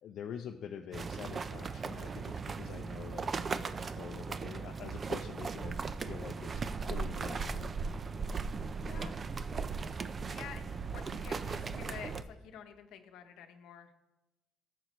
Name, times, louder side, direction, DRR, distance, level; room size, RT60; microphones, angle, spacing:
voice 1, 0.0-7.7, left 8 dB, 65° left, 4 dB, 0.5 m, -46 dB
sound 1, 0.9-12.2, right 4 dB, 35° right, 0.4 m, -37 dB
voice 2, 8.8-9.1 10.3-13.9, left 8 dB, 80° left, 7 dB, 0.9 m, -49 dB
14.5 x 6.9 x 3.1 m, 1.1 s
cardioid pair, 115°, 0 cm